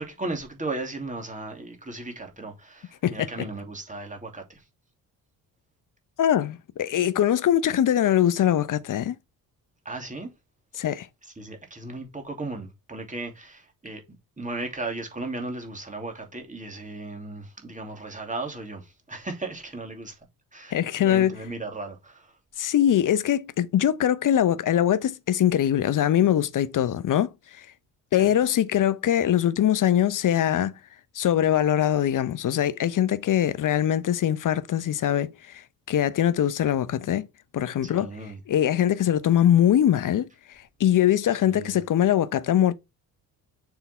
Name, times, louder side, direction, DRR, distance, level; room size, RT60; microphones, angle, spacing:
voice 1, 0.0-4.6 9.8-10.3 11.2-20.1 20.5-22.4 28.1-28.3 37.8-38.4 41.5-41.7, right 2 dB, 15° right, 2.7 m, -36 dB
voice 2, 6.2-9.2 10.8-11.1 20.7-21.3 22.6-27.7 28.1-30.7 31.1-37.2 37.5-38.1 38.5-40.3 40.8-42.7, left 10 dB, 40° left, 0.8 m, -22 dB
7.0 x 3.8 x 4.3 m
figure-of-eight pair, 45°, 48 cm